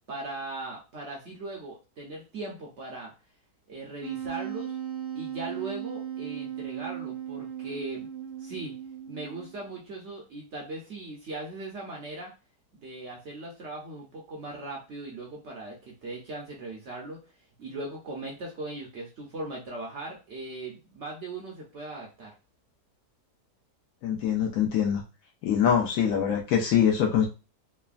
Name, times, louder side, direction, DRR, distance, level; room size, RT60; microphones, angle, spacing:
voice 1, 0.1-3.1 3.7-4.8 5.1-8.1 8.4-8.7 9.1-12.3 12.7-17.2 17.6-22.3, right 2 dB, 60° right, -1 dB, 0.8 m, -39 dB
Wind instrument woodwind instrument, 4.0-9.7, right 10 dB, 85° right, 1.1 m, -37 dB
voice 2, 24.0-25.0 25.4-27.3, left 8 dB, 70° left, 1 dB, 0.9 m, -24 dB
3.2 x 2.0 x 2.4 m, 0.31 s
omnidirectional pair, 1.7 m